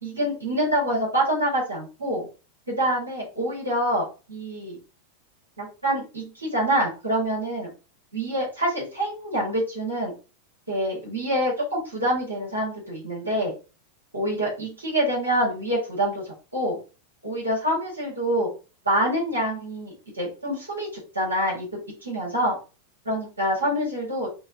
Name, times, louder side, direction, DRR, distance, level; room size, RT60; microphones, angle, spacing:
voice 1, 0.0-2.3 2.7-4.8 5.6-7.7 8.1-10.1 10.7-13.5 14.1-16.8 17.2-18.5 18.9-22.6 23.1-24.3, right 1 dB, 80° right, -5 dB, 2.0 m, -26 dB
4.4 x 2.4 x 2.9 m, 0.32 s
figure-of-eight pair, 90°, 0 cm